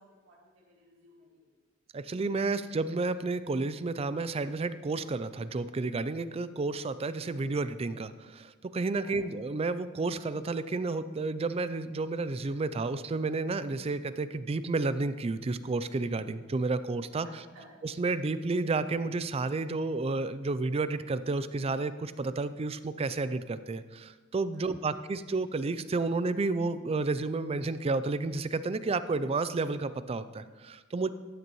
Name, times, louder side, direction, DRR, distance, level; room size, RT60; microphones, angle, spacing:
voice 1, 0.0-1.5 9.0-9.3 17.2-17.8 24.5-25.1, right 1 dB, 80° right, -3 dB, 2.1 m, -56 dB
voice 2, 1.9-17.3 17.8-31.1, right 3 dB, 30° right, 13 dB, 0.4 m, -31 dB
13.0 x 9.7 x 3.0 m, 1.4 s
head